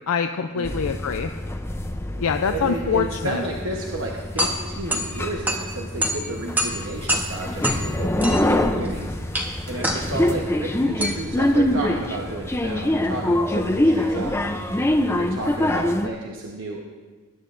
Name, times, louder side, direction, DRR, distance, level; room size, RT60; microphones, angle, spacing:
voice 1, 0.1-1.3 2.2-3.4, left 6 dB, 90° left, 7 dB, 0.5 m, -24 dB
sound 1, 0.6-16.1, left 1 dB, 10° left, 0.5 m, -25 dB
voice 2, 2.5-14.3 14.6-16.8, right 2 dB, 65° right, -1 dB, 1.1 m, -32 dB
sound 2, 4.0-13.0, equal, 10° right, 1.0 m, -29 dB
20.5 x 10.5 x 2.6 m, 1.4 s
head